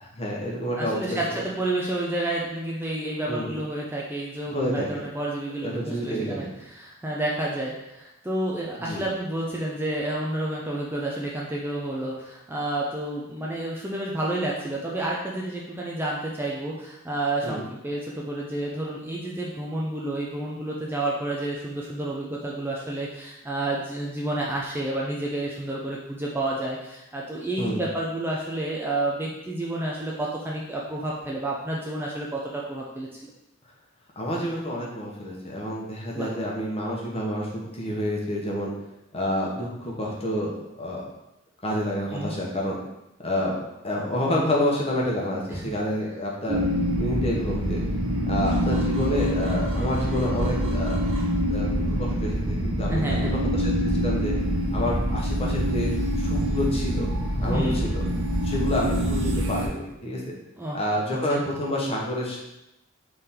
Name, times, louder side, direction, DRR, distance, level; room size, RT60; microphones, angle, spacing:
voice 1, 0.0-1.4 3.3-3.5 4.5-5.0 5.6-6.5 8.8-9.0 17.4-17.6 27.6-27.8 34.2-38.7 39.1-41.0 41.6-42.8 43.2-43.5 43.8-46.7 47.0-47.8 48.3-51.0 51.5-53.0 53.3-54.4 54.7-57.1 57.4-58.0 58.4-60.3 60.7-62.4, left 1 dB, 30° left, -3 dB, 1.0 m, -28 dB
voice 2, 0.8-33.1 36.1-36.3 42.1-42.3 45.5-45.8 52.9-53.3 57.4-57.8 60.6-60.8 61.1-61.4, right 1 dB, 10° right, -4 dB, 0.4 m, -30 dB
sound 1, 46.5-59.7, equal, 65° right, 0.9 m, -25 dB
3.7 x 3.4 x 4.3 m, 0.90 s
head